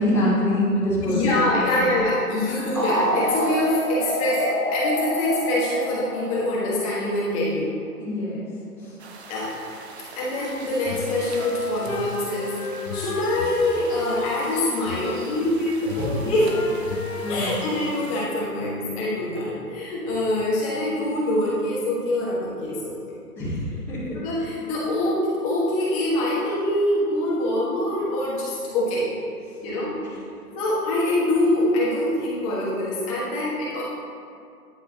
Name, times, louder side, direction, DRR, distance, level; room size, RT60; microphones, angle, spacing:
voice 1, 0.0-1.8 2.4-2.7 8.0-8.4 8.8-9.0 16.0-16.3 17.2-17.7 23.4-24.2 30.0-30.2, left 1 dB, 5° left, -15 dB, 0.9 m, -25 dB
voice 2, 1.0-7.7 9.3-9.5 10.2-12.5 12.9-16.5 17.3-23.2 24.2-29.1 29.6-29.9 30.5-33.8, left 1 dB, 20° left, -7 dB, 1.5 m, -24 dB
sound 1, 2.7-7.2, equal, 20° right, 0.5 m, -27 dB
sound 2, 9.0-18.3, right 4 dB, 45° right, 0.8 m, -42 dB
sound 3, 10.3-15.5 15.9-17.6, left 5 dB, 65° left, 0.6 m, -35 dB
10.5 x 4.8 x 2.8 m, 2.4 s
figure-of-eight pair, 140°, 46 cm